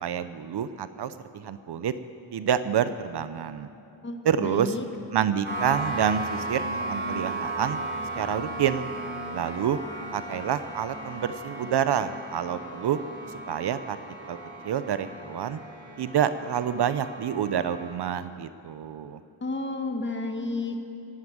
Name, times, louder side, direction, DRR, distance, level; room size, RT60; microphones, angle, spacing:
voice 1, 0.0-1.9 2.3-3.7 4.2-4.8 5.1-7.8 8.2-8.9 9.3-9.8 10.1-13.0 13.5-14.0 14.3-14.4 14.6-15.6 16.0-19.2, right 9 dB, 65° right, 12 dB, 0.7 m, -28 dB
voice 2, 4.0-4.8 19.4-20.8, left 2 dB, 25° left, 4 dB, 1.6 m, -31 dB
sound 1, 5.4-18.0, right 2 dB, 25° right, 4.8 m, -36 dB
16.0 x 9.7 x 9.3 m, 2.8 s
wide cardioid pair, 130°, 44 cm